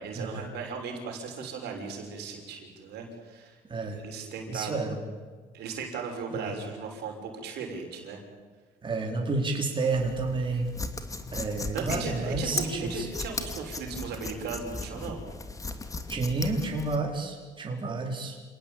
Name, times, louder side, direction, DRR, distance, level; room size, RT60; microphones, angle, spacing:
voice 1, 0.0-3.6 3.9-5.0 5.5-8.2 11.7-15.2, right 5 dB, 80° right, 3 dB, 6.2 m, -37 dB
voice 2, 4.5-5.0 6.4-6.6 8.8-10.7 11.3-13.1 16.1-18.4, right 3 dB, 30° right, 1 dB, 4.4 m, -30 dB
sound 1, 9.9-17.0, left 3 dB, 20° left, 2.5 m, -37 dB
28.5 x 18.5 x 9.1 m, 1.5 s
cardioid pair, 110°, 17 cm